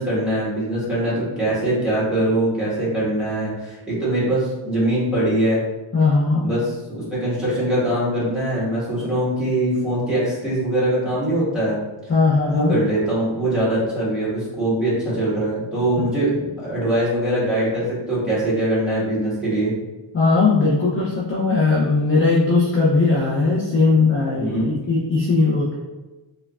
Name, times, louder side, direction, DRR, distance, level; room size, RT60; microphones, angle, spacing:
voice 1, 0.0-5.6 6.4-11.8 12.5-19.7 24.3-24.7, right 1 dB, ahead, -10 dB, 1.5 m, -22 dB
voice 2, 5.9-6.5 12.1-12.7 16.0-16.1 20.1-25.7, left 3 dB, 25° left, -6 dB, 0.5 m, -18 dB
4.5 x 2.2 x 2.4 m, 1.1 s
wide cardioid pair, 135°, 48 cm